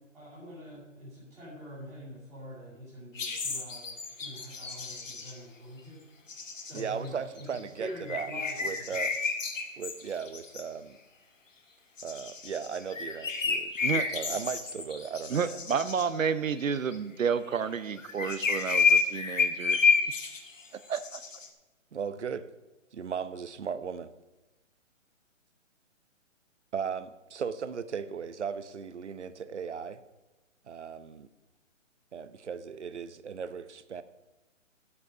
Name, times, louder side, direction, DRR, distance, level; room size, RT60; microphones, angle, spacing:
voice 1, 0.1-6.0 6.6-7.2 7.8-8.9, equal, ahead, -17 dB, 2.5 m, -45 dB
sound 1, 3.2-5.4 6.3-7.1 7.4-7.6 8.1-10.6 12.0-16.1 16.6-17.0 17.9-20.7 20.9-21.5, left 5 dB, 75° left, 2.1 m, -30 dB
voice 2, 6.7-8.3 8.6-9.1 9.8-11.0 12.0-15.6 21.9-22.4 22.9-24.1 26.7-30.0 30.7-31.3 32.1-34.0, right 6 dB, 60° right, 13 dB, 0.9 m, -37 dB
voice 3, 15.3-19.8 20.9-21.2, right 6 dB, 85° right, 14 dB, 1.0 m, -30 dB
12.0 x 8.4 x 5.1 m, 1.1 s
hypercardioid pair, 180°, 39 cm